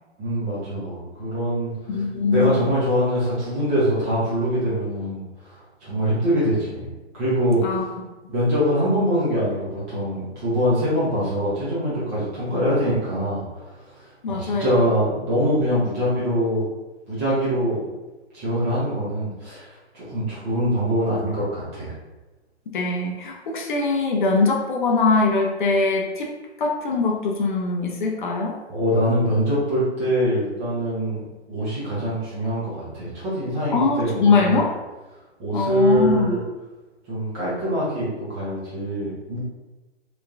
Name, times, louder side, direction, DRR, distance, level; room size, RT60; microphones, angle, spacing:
voice 1, 0.2-1.7 2.3-7.8 8.3-16.7 17.1-17.8 18.3-19.7 19.9-21.9 28.7-31.2 31.5-34.6 35.4-36.4 37.1-39.4, equal, 15° right, -9 dB, 0.4 m, -24 dB
voice 2, 1.9-2.7 7.6-7.8 14.2-14.9 22.7-26.3 26.6-28.6 33.7-34.7 35.5-36.4, left 3 dB, 45° left, 0 dB, 0.4 m, -22 dB
2.9 x 2.1 x 2.5 m, 1.1 s
figure-of-eight pair, 125°, 34 cm